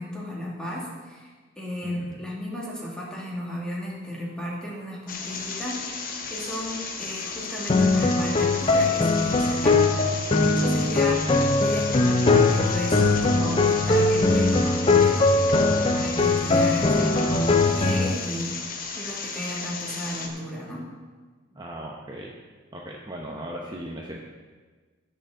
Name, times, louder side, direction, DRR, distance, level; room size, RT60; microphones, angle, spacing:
voice 1, 0.0-9.8 10.4-15.3 15.9-18.6 19.0-20.9, equal, 5° left, -5 dB, 2.2 m, -34 dB
voice 2, 1.8-2.2 10.7-11.2 21.5-22.3 22.7-24.2, right 1 dB, 20° right, -2 dB, 0.9 m, -38 dB
sound 1, 5.1-20.3, left 4 dB, 45° left, 1.1 m, -34 dB
sound 2, 7.7-18.1, left 3 dB, 30° left, 0.5 m, -21 dB
16.5 x 6.7 x 3.9 m, 1.4 s
head